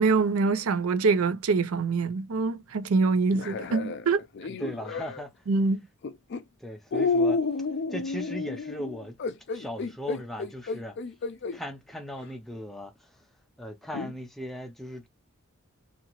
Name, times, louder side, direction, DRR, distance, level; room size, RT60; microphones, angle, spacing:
voice 1, 0.0-4.2 5.5-5.8, right 4 dB, 80° right, 0.5 m, -24 dB
sound 1, 3.3-5.2 6.0-6.4 6.9-11.6 12.2-12.3 13.9-14.1, left 3 dB, 55° left, 0.4 m, -30 dB
voice 2, 4.5-5.3 6.6-9.2 9.5-11.0 11.5-13.1 13.6-15.1, equal, ahead, 0.5 m, -38 dB
2.8 x 2.5 x 2.9 m
head